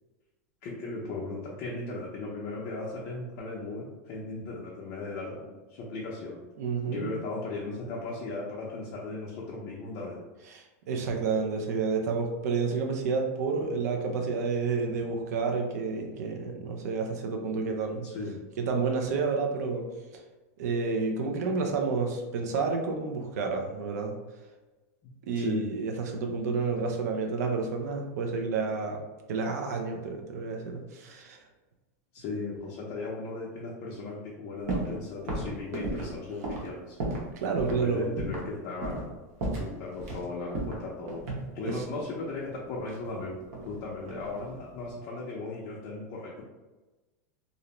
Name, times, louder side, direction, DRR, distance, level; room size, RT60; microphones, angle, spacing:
voice 1, 0.6-6.4 6.9-10.2 14.9-15.0 18.0-18.4 25.0-25.7 32.1-37.0 37.7-39.2 39.6-41.2 41.5-43.4 43.6-46.4, left 3 dB, 35° left, -4 dB, 0.4 m, -37 dB
voice 2, 6.6-7.1 10.5-18.1 18.6-19.8 20.1-20.2 20.6-24.1 25.3-29.0 29.3-31.4 37.3-38.1 41.6-41.8, right 4 dB, 85° right, 3 dB, 0.4 m, -30 dB
sound 1, 34.7-35.0 35.3-37.3 37.6-37.8 38.2-38.5 38.8-39.1 39.4-40.2 40.5-41.9 42.9-43.8 44.1-44.5, right 2 dB, 65° right, 0.8 m, -34 dB
2.5 x 2.0 x 2.9 m, 1.2 s
supercardioid pair, 160°, 9 cm